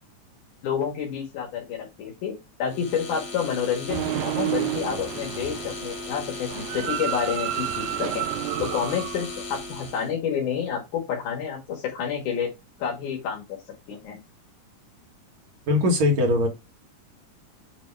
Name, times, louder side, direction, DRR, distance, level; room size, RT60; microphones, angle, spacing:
voice 1, 0.6-2.3 2.6-8.3 8.6-12.5 12.8-13.4 13.9-14.2, left 7 dB, 80° left, 3.1 m, -29 dB
sound 1, 2.7-10.1, left 3 dB, 30° left, 1.2 m, -37 dB
sound 2, 3.9-9.9, right 16 dB, 80° right, 1.9 m, -31 dB
voice 2, 15.7-16.5, left 1 dB, 65° right, 3.1 m, -20 dB
8.1 x 3.2 x 4.6 m
omnidirectional pair, 3.4 m